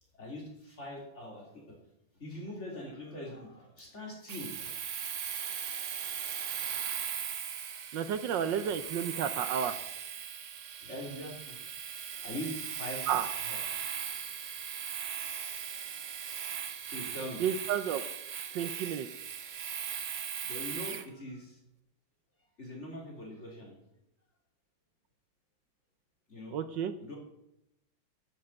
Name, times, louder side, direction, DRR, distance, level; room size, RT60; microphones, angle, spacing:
voice 1, 0.1-1.8 2.1-4.8 8.4-8.7 10.8-11.6 12.1-13.0 13.4-13.9 16.1-16.3 16.9-17.4 18.6-18.7 20.4-21.6 22.6-23.8 26.3-26.6 27.0-27.2, left 1 dB, 35° left, -2 dB, 3.5 m, -43 dB
Domestic sounds home sounds, 4.3-21.1, right 8 dB, 50° right, 1.0 m, -38 dB
voice 2, 7.9-9.8 13.1-13.3 17.4-18.0 18.5-19.1 26.5-26.9, right 8 dB, 75° right, 11 dB, 1.4 m, -31 dB
13.0 x 7.3 x 7.6 m, 0.84 s
omnidirectional pair, 2.1 m